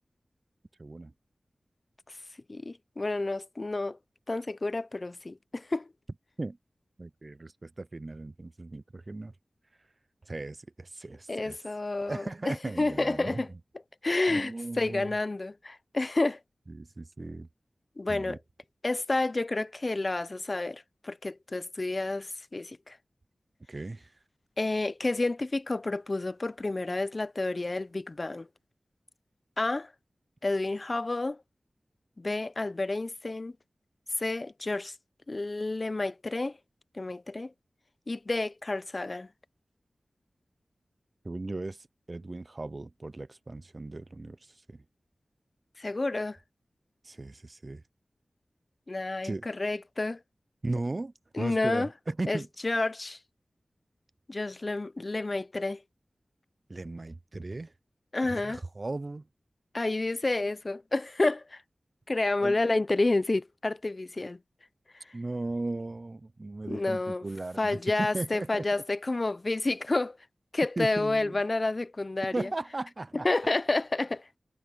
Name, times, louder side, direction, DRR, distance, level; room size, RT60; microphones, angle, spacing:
voice 1, 0.8-1.1 6.4-6.6 7.0-9.3 10.3-11.6 12.1-13.6 14.3-15.1 16.7-17.5 18.1-18.4 23.7-24.1 41.2-44.8 47.0-47.8 49.2-49.5 50.6-52.5 56.7-57.7 58.2-59.2 62.4-62.6 65.1-68.8 70.8-71.4 72.3-73.3, right 2 dB, 45° right, 0.4 m, -37 dB
voice 2, 2.5-4.0 4.3-5.9 11.3-13.5 14.0-14.5 14.8-16.4 18.0-18.4 18.8-23.0 24.6-28.5 29.6-29.9 30.4-31.4 32.2-33.5 34.2-34.9 35.3-36.5 37.0-37.5 38.1-39.3 45.8-46.4 48.9-50.2 51.3-51.9 52.3-53.2 54.3-55.8 58.1-58.6 59.7-61.6 62.1-64.4 66.7-67.2 67.6-70.2 70.5-72.5 73.2-74.2, left 2 dB, 45° left, 0.6 m, -30 dB
wide cardioid pair, 55°, 0 cm